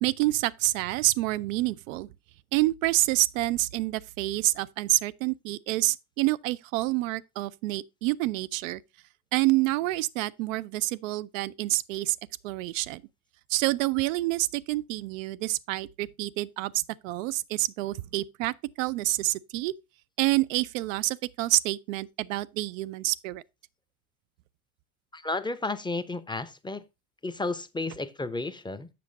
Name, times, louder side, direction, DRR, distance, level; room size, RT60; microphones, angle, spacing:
voice 1, 0.0-2.1 2.5-8.8 9.3-12.2 12.4-13.0 13.5-19.7 20.2-23.4, right 18 dB, 65° right, 0.5 m, -28 dB
voice 2, 25.1-26.8 27.2-28.9, left 3 dB, 10° left, 0.7 m, -32 dB
7.7 x 6.3 x 3.9 m
figure-of-eight pair, 65°, 43 cm